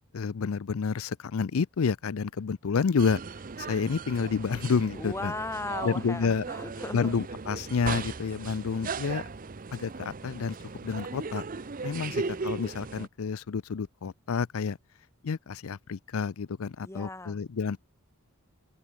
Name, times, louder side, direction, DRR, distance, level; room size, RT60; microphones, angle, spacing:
voice 1, 0.1-3.2 3.6-5.3 5.8-6.4 6.9-9.2 9.7-10.5 10.8-11.4 11.8-14.8 15.2-17.8, left 5 dB, 70° left, 0.5 m, -29 dB
sound 1, 3.0-13.1, right 4 dB, 40° right, 0.6 m, -37 dB
voice 2, 5.0-7.1 11.8-12.5 16.8-17.4, left 2 dB, 10° left, 1.2 m, -38 dB
open air
head